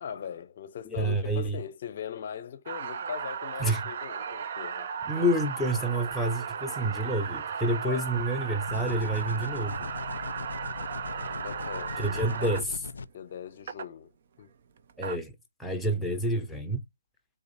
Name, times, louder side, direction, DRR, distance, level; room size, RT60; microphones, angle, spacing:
voice 1, 0.0-5.3 7.8-8.0 11.4-12.7 13.1-14.1 14.4-14.5, left 8 dB, 40° left, 0.8 m, -40 dB
voice 2, 0.9-1.6 3.6-3.8 5.1-9.9 12.0-12.8 15.0-15.3 15.6-16.8, right 1 dB, 5° left, 0.7 m, -28 dB
sound 1, 2.7-12.6 13.7-13.9 14.8-15.2, right 6 dB, 45° right, 0.6 m, -35 dB
sound 2, 8.7-13.1, left 4 dB, 65° left, 0.4 m, -40 dB
4.0 x 2.8 x 4.1 m
figure-of-eight pair, 145°, 0 cm